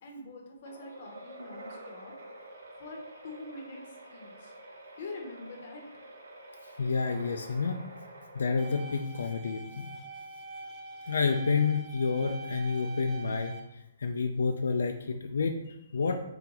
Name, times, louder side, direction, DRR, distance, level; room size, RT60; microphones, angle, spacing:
voice 1, 0.0-2.1 2.8-4.5 5.0-5.8, left 2 dB, 40° left, 1 dB, 0.8 m, -44 dB
sound 1, 0.6-9.4, right 1 dB, 85° right, 1.0 m, -48 dB
voice 2, 6.8-7.8 8.3-9.9 11.1-13.5 14.0-16.2, left 4 dB, 90° left, 5 dB, 0.4 m, -29 dB
sound 2, 8.6-13.6, right 3 dB, 5° right, 0.4 m, -44 dB
3.8 x 3.3 x 3.0 m, 0.85 s
hypercardioid pair, 170°, 0 cm